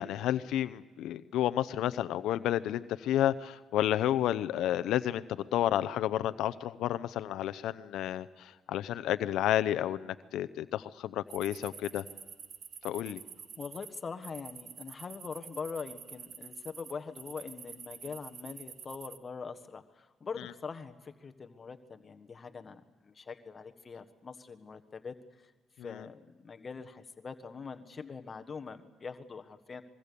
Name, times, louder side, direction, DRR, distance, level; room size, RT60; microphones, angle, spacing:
voice 1, 0.0-5.2 5.5-12.0 12.8-13.2 25.8-26.1, left 12 dB, 85° left, 14 dB, 0.7 m, -31 dB
sound 1, 11.3-19.2, right 7 dB, 55° right, 1.1 m, -48 dB
voice 2, 13.6-22.7 23.0-25.5 25.8-29.8, left 5 dB, 40° left, 8 dB, 1.5 m, -43 dB
25.0 x 23.0 x 6.9 m, 1.3 s
cardioid pair, 90°, 0 cm